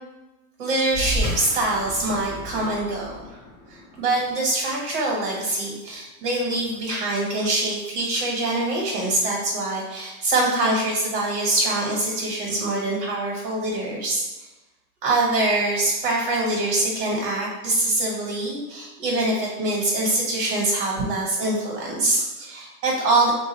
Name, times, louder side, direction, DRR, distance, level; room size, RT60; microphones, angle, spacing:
voice 1, 0.6-3.4 3.7-14.2 15.0-23.3, right 2 dB, 65° right, -3 dB, 1.4 m, -24 dB
sound 1, 0.9-5.8, equal, 10° left, 0.3 m, -33 dB
2.5 x 2.4 x 4.0 m, 1.1 s
supercardioid pair, 145°, 45 cm